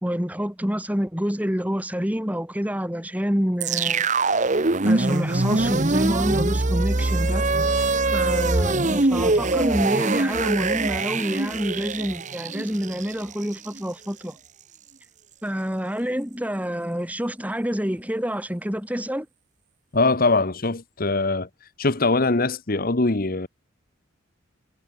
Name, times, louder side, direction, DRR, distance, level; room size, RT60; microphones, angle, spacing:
voice 1, 0.0-4.1 4.9-7.5 8.1-14.4 15.4-19.3, equal, 5° right, 2.1 m, -27 dB
sound 1, 3.6-13.8, right 2 dB, 35° right, 1.1 m, -23 dB
voice 2, 19.9-21.5 21.8-23.5, left 3 dB, 45° left, 1.1 m, -22 dB
head